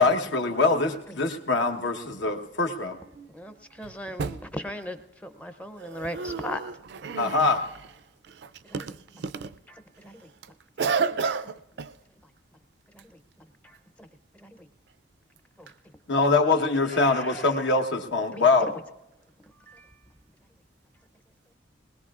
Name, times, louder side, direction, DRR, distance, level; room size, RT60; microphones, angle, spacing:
voice 1, 0.0-3.0 7.2-7.6 16.1-18.7, left 3 dB, 75° left, 1.1 m, -23 dB
voice 2, 3.3-6.6 10.0-10.2 14.4-14.5 15.6-15.7 16.9-17.5 18.3-18.7 19.7-19.9, left 1 dB, 5° left, 0.5 m, -37 dB
voice 3, 5.8-7.5 8.3-9.6 10.8-11.9, right 5 dB, 60° right, 0.4 m, -31 dB
20.5 x 20.0 x 2.4 m
head